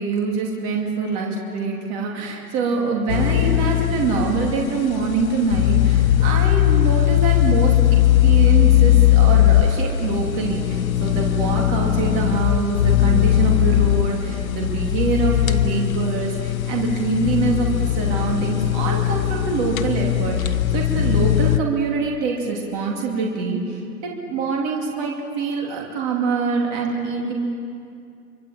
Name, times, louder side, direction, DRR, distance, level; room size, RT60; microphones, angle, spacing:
voice 1, 0.0-7.7 8.2-27.3, right 4 dB, 20° right, -1 dB, 2.6 m, -24 dB
sound 1, 3.1-21.6, left 13 dB, 55° left, 1.3 m, -19 dB
27.0 x 24.0 x 8.8 m, 2.5 s
hypercardioid pair, 175°, 50 cm